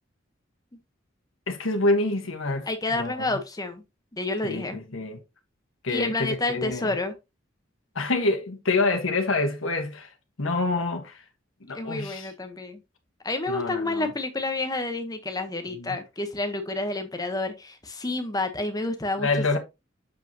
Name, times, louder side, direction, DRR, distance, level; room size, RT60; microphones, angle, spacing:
voice 1, 1.5-3.3 4.4-5.2 5.8-6.9 7.9-10.1 10.4-11.2 11.6-12.3 13.5-14.1 15.7-16.0 19.2-19.6, left 3 dB, 90° left, 1.3 m, -27 dB
voice 2, 2.7-3.8 4.1-4.8 5.9-7.1 11.7-12.8 13.2-19.3, left 2 dB, 20° left, 1.0 m, -29 dB
7.4 x 5.3 x 2.8 m
head